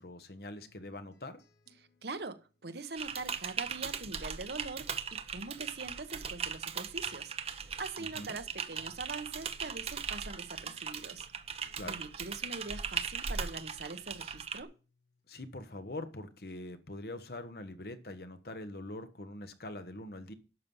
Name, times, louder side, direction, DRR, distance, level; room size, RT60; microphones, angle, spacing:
voice 1, 0.0-1.4 8.0-8.4 11.8-12.0 15.3-20.3, left 1 dB, 60° left, 1.2 m, -43 dB
sound 1, 0.6-7.3 7.6-15.3 15.7-16.6, left 3 dB, 85° left, 2.9 m, -69 dB
voice 2, 2.0-5.0 5.3-11.3 11.8-14.7, right 3 dB, 70° right, 1.1 m, -43 dB
Typing, 3.0-14.6, right 6 dB, 35° right, 0.7 m, -39 dB
11.5 x 6.9 x 5.5 m
head